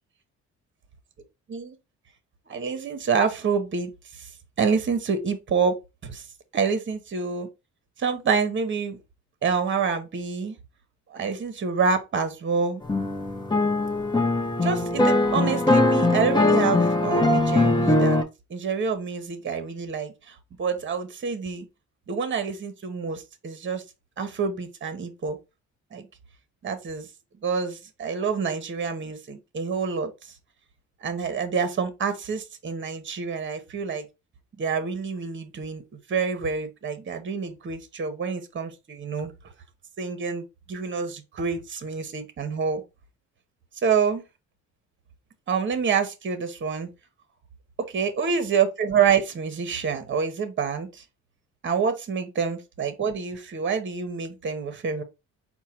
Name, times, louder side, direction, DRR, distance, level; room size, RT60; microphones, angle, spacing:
voice 1, 2.5-4.3 4.6-5.7 6.0-6.2 6.5-7.5 8.0-9.0 9.4-10.5 11.1-12.8 14.6-18.2 18.5-21.6 22.1-23.8 24.2-25.4 25.9-26.1 26.6-27.1 27.4-30.3 31.0-34.0 34.6-35.8 36.1-39.3 40.0-42.8 43.8-44.2 45.5-46.9 47.9-51.0 51.6-55.0, right 6 dB, 40° right, 1.0 m, -27 dB
sound 1, 12.8-18.2, left 2 dB, 15° left, 0.7 m, -21 dB
4.5 x 2.3 x 4.3 m
cardioid pair, 90°, 30 cm